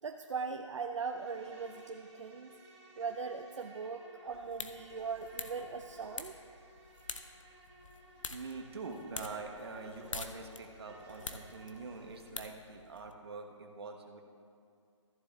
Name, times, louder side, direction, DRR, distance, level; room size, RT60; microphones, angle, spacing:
voice 1, 0.0-2.5 3.0-6.3, right 5 dB, 70° right, 5 dB, 0.6 m, -40 dB
Insect, 0.9-12.3, right 1 dB, 25° right, 2.2 m, -58 dB
sound 1, 4.3-13.1, left 4 dB, 85° left, 0.8 m, -47 dB
voice 2, 8.3-14.2, right 4 dB, 55° right, 3 dB, 1.1 m, -45 dB
14.5 x 10.0 x 2.3 m, 2.4 s
hypercardioid pair, 160°, 16 cm